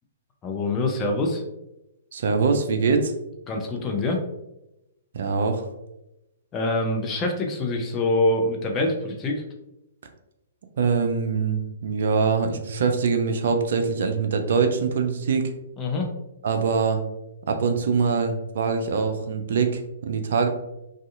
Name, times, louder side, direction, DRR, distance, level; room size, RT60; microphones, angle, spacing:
voice 1, 0.4-1.4 3.5-4.2 6.5-9.4 15.8-16.1, left 2 dB, 25° left, 1 dB, 0.5 m, -25 dB
voice 2, 2.1-3.1 5.1-5.6 10.8-15.5 16.4-17.0 17.5-20.5, right 5 dB, 60° right, 5 dB, 0.4 m, -23 dB
2.6 x 2.3 x 2.4 m, 0.90 s
figure-of-eight pair, 120°, 0 cm